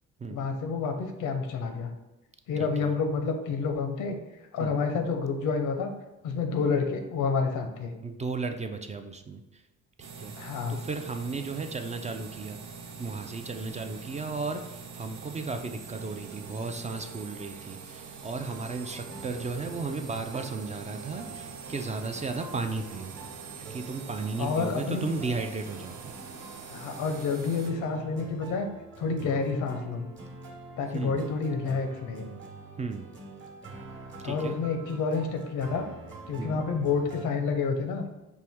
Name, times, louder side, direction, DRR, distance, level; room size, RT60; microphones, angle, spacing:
voice 1, 0.3-1.9 2.5-4.2 4.5-5.9 6.2-7.9 10.4-10.8 24.4-25.1 26.7-28.7 29.0-30.1 30.8-32.3 34.2-35.8 36.3-38.1, left 4 dB, 90° left, 5 dB, 0.7 m, -29 dB
voice 2, 8.0-9.4 10.0-10.3 10.7-12.6 13.0-23.1 23.7-26.1 30.9-31.2 32.8-33.1 34.2-34.6 36.4-36.7, right 4 dB, 25° right, 7 dB, 0.3 m, -35 dB
sound 1, 10.0-27.7, right 5 dB, 90° right, 0.6 m, -44 dB
A Melancholic Existence, 18.4-37.3, right 3 dB, 40° right, 1.0 m, -46 dB
4.4 x 2.5 x 3.5 m, 0.99 s
cardioid pair, 90°, 30 cm